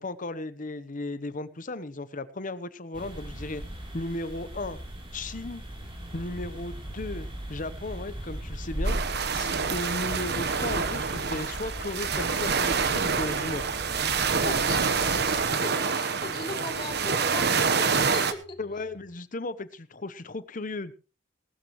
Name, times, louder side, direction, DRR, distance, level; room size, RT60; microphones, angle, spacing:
voice 1, 0.0-3.6 3.9-4.8 5.1-5.6 6.1-13.7 18.6-20.9, left 2 dB, 45° left, 14 dB, 0.9 m, -35 dB
sound 1, 2.9-15.5, right 1 dB, 30° right, 3.3 m, -38 dB
sound 2, 5.4-19.1, left 1 dB, 80° left, 2.6 m, -53 dB
sound 3, 8.8-18.3, right 5 dB, 60° right, 1.2 m, -27 dB
voice 2, 14.4-18.6, left 2 dB, 30° left, 2 dB, 3.2 m, -39 dB
18.5 x 13.0 x 3.1 m, 0.33 s
head